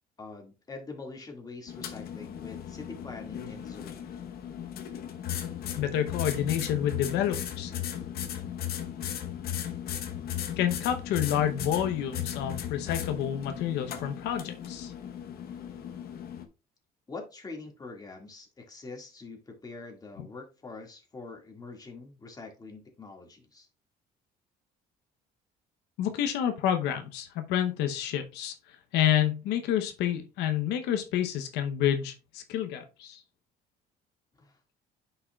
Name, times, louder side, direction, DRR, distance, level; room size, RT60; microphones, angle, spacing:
voice 1, 0.2-4.3 15.5-15.6 17.1-23.7 34.4-34.6, left 3 dB, 20° left, 2.0 m, -44 dB
sound 1, 1.7-16.5, left 10 dB, 65° left, 1.0 m, -36 dB
voice 2, 5.8-7.7 10.6-14.9 26.0-33.2, left 10 dB, 90° left, 0.8 m, -29 dB
9.7 x 5.6 x 2.3 m
cardioid pair, 110°, 17 cm